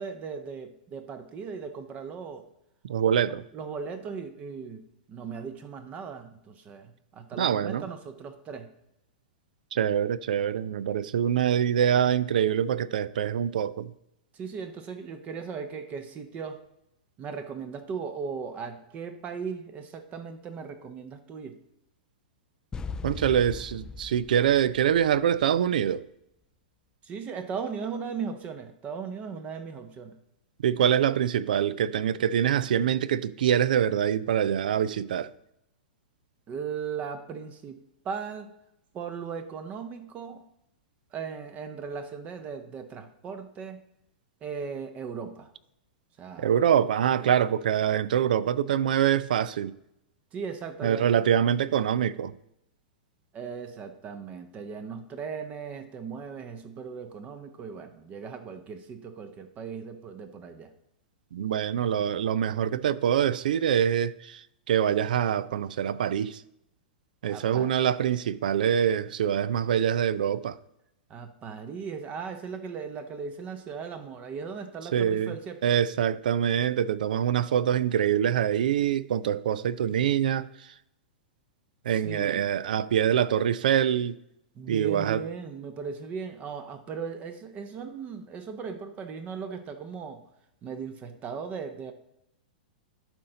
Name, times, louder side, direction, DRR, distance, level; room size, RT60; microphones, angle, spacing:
voice 1, 0.0-2.5 3.2-8.7 14.3-16.6 17.2-21.6 27.0-30.2 36.5-38.5 38.9-40.4 41.1-43.8 44.4-45.5 46.2-46.5 47.2-47.3 50.3-51.1 53.3-60.7 67.3-67.7 71.1-75.8 81.9-82.4 84.5-90.2 90.6-91.9, right 6 dB, 30° right, 0.8 m, -38 dB
voice 2, 2.8-3.4 7.4-7.9 9.7-13.9 23.0-26.1 30.6-35.3 46.4-49.7 50.8-52.3 61.3-66.4 67.2-70.6 74.9-75.3 75.6-80.5 81.9-84.2 84.7-85.2, right 9 dB, 70° right, 0.4 m, -25 dB
sound 1, 22.7-25.7, left 5 dB, 15° left, 0.3 m, -39 dB
12.0 x 4.3 x 3.9 m
hypercardioid pair, 115°, 5 cm